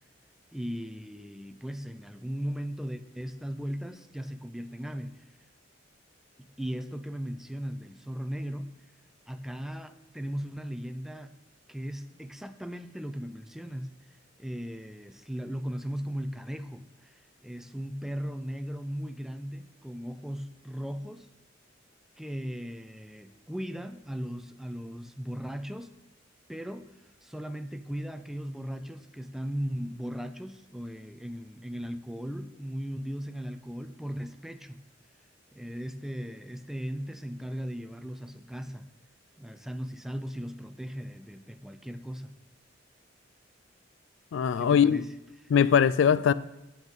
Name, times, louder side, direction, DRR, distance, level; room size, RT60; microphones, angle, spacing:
voice 1, 0.5-5.2 6.4-8.7 9.3-11.3 11.7-13.9 14.4-21.3 22.2-26.0 26.5-34.9 35.5-38.9 39.4-42.4 44.6-45.5, equal, ahead, 0.4 m, -37 dB
voice 2, 44.3-45.0 45.5-46.3, left 7 dB, 75° left, 0.3 m, -21 dB
8.9 x 8.2 x 4.0 m
head